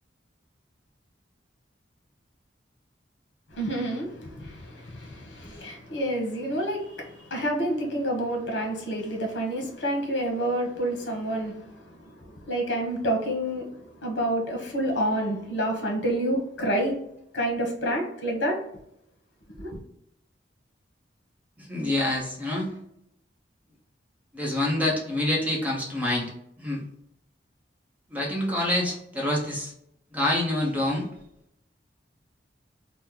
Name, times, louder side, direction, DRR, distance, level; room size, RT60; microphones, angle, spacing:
voice 1, 3.5-13.7 14.0-16.9 17.3-18.6 19.6-19.7, right 1 dB, 80° left, 1 dB, 0.9 m, -28 dB
voice 2, 21.6-22.7 24.3-26.3 26.6-26.8 28.1-29.7 30.1-31.1, left 1 dB, 10° right, -2 dB, 0.8 m, -27 dB
2.9 x 2.1 x 3.6 m, 0.76 s
head